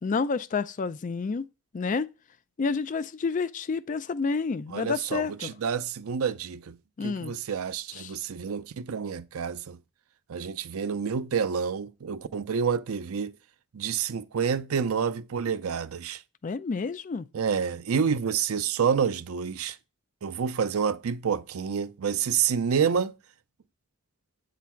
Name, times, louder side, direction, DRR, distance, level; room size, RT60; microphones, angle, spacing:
voice 1, 0.0-1.4 1.7-2.1 2.6-5.5 7.0-7.3 7.9-8.1 16.4-17.2, left 4 dB, 35° left, 0.4 m, -29 dB
voice 2, 4.7-6.8 7.0-9.8 10.3-13.3 13.7-16.2 17.3-19.8 20.2-23.1, right 6 dB, 80° right, 0.5 m, -28 dB
8.3 x 3.9 x 4.4 m
head